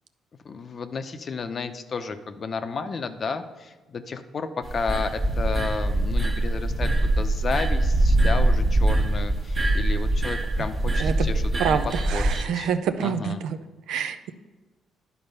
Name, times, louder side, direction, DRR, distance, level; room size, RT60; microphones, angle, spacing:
voice 1, 0.4-12.7 13.0-13.4, left 5 dB, 45° left, 9 dB, 0.7 m, -32 dB
sound 1, 4.7-12.4, right 1 dB, 35° right, 1.3 m, -23 dB
voice 2, 11.6-13.6 13.9-14.3, right 7 dB, 85° right, 9 dB, 0.5 m, -26 dB
11.0 x 4.2 x 5.5 m, 1.2 s
cardioid pair, 90°, 0 cm